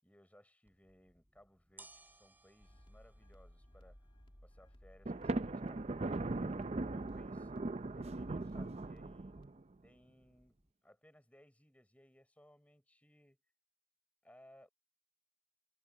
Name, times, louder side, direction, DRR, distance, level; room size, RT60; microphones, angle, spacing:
voice 1, 0.0-4.0 4.4-7.5 7.9-9.4 9.8-13.4 14.2-14.7, equal, 10° left, 4.7 m, -64 dB
sound 1, 0.6-10.7, right 2 dB, 10° right, 4.9 m, -66 dB
sound 2, 2.6-9.5, equal, 30° left, 2.4 m, -60 dB
Thunder, 5.1-9.6, right 2 dB, 35° right, 0.5 m, -39 dB
head